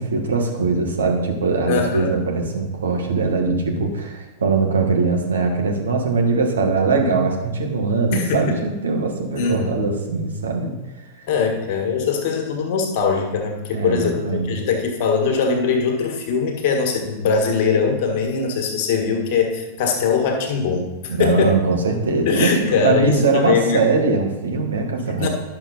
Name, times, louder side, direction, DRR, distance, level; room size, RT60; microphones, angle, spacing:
voice 1, 0.0-10.7 13.7-14.5 21.2-25.3, right 4 dB, 75° right, 1 dB, 1.5 m, -21 dB
voice 2, 1.7-2.2 8.1-8.6 9.3-9.8 11.3-21.6 22.2-23.8 25.2-25.3, left 5 dB, 50° left, 3 dB, 1.6 m, -21 dB
10.5 x 6.4 x 4.1 m, 1.1 s
figure-of-eight pair, 90°, 0 cm